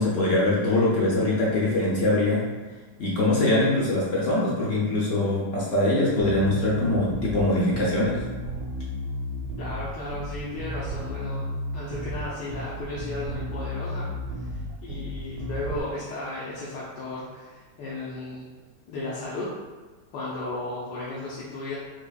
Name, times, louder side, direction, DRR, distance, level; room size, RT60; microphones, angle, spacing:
voice 1, 0.0-2.5 3.0-8.2, left 2 dB, 60° left, -6 dB, 0.8 m, -23 dB
Bass guitar, 6.2-15.8, equal, 80° right, 1.2 m, -33 dB
voice 2, 9.6-18.5 18.9-19.5 20.1-21.8, left 2 dB, 80° left, -7 dB, 1.3 m, -35 dB
4.0 x 2.8 x 2.3 m, 1.3 s
omnidirectional pair, 1.9 m